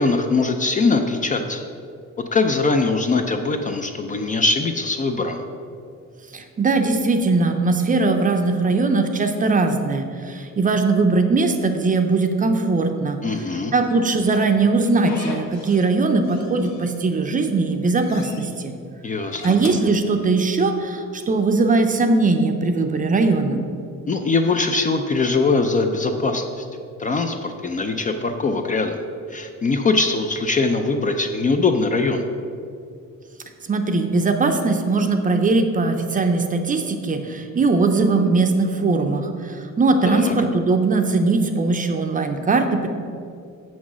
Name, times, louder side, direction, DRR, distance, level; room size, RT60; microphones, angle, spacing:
voice 1, 0.0-1.6 2.3-5.4 13.2-13.7 19.0-19.4 24.1-26.7 27.0-29.0 29.3-32.2 40.1-40.3, left 3 dB, 25° left, 5 dB, 0.4 m, -21 dB
voice 2, 6.3-13.2 13.7-18.7 19.4-23.6 33.7-42.9, right 3 dB, 25° right, 5 dB, 0.6 m, -20 dB
Slam / Squeak, 13.9-15.9 16.2-17.2 17.6-18.5 19.1-20.7, left 3 dB, 60° left, 1.3 m, -38 dB
7.2 x 6.1 x 6.1 m, 2.4 s
cardioid pair, 160°, 31 cm